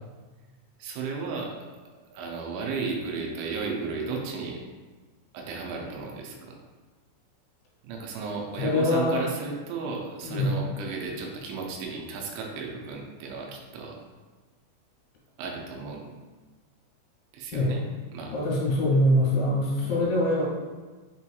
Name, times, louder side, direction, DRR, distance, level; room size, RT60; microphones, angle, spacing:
voice 1, 0.8-1.6 1.9-4.6 5.3-6.6 7.8-14.0 15.4-16.1 17.3-17.8 18.1-18.3 19.8-20.0, right 4 dB, 90° right, 0 dB, 3.0 m, -34 dB
voice 2, 8.6-9.2 10.2-10.6 17.5-17.8 18.3-20.4, left 1 dB, 85° left, -5 dB, 3.3 m, -23 dB
7.1 x 2.8 x 2.3 m, 1.3 s
omnidirectional pair, 5.1 m